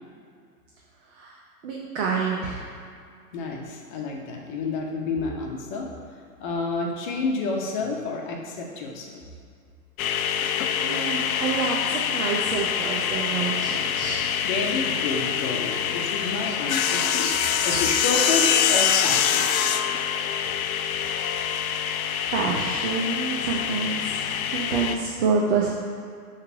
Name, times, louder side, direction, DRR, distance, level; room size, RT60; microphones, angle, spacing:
voice 1, 1.6-2.6 10.7-14.3 20.5-20.7 22.3-25.7, right 5 dB, 45° right, -3 dB, 0.9 m, -27 dB
voice 2, 3.3-5.9 6.4-9.2 14.4-19.5, left 3 dB, 30° left, 0 dB, 0.8 m, -29 dB
sound 1, 10.0-25.0, left 8 dB, 60° left, 0.5 m, -25 dB
sound 2, 11.1-18.5, left 1 dB, 5° right, 0.4 m, -39 dB
5.8 x 3.2 x 5.7 m, 2.3 s
hypercardioid pair, 125°, 48 cm